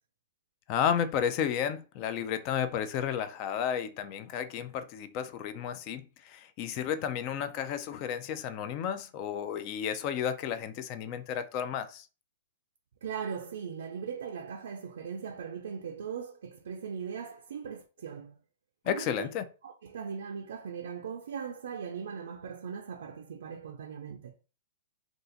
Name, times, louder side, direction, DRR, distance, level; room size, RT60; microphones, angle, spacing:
voice 1, 0.7-12.1 18.8-19.4, left 8 dB, 40° left, 0.4 m, -32 dB
voice 2, 13.0-18.3 18.8-19.3 19.6-24.3, right 6 dB, 75° right, 0.4 m, -39 dB
2.6 x 2.4 x 3.8 m
hypercardioid pair, 135°, 0 cm